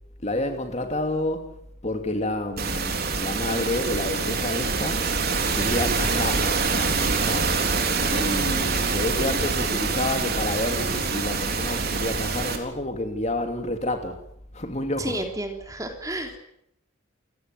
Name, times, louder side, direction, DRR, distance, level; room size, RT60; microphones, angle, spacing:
voice 1, 0.2-5.2 5.5-7.7 8.1-14.2 14.5-15.2, left 1 dB, 35° left, 2.6 m, -29 dB
sound 1, 2.6-12.6, right 4 dB, 50° right, 3.8 m, -25 dB
voice 2, 15.0-16.4, right 1 dB, 15° right, 3.5 m, -31 dB
28.5 x 17.0 x 9.5 m
head